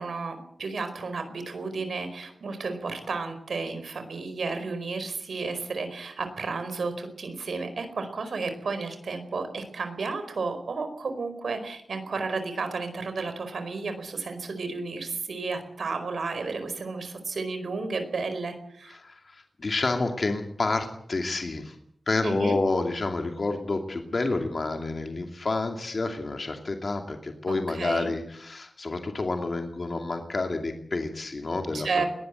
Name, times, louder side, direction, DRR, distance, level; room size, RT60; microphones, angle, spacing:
voice 1, 0.0-19.0 22.2-22.6 27.5-28.1 31.7-32.1, right 4 dB, 85° right, 9 dB, 4.7 m, -32 dB
voice 2, 18.9-21.8 22.1-32.0, left 3 dB, 50° left, 4 dB, 2.5 m, -29 dB
21.5 x 18.5 x 8.1 m, 0.68 s
wide cardioid pair, 110°, 0 cm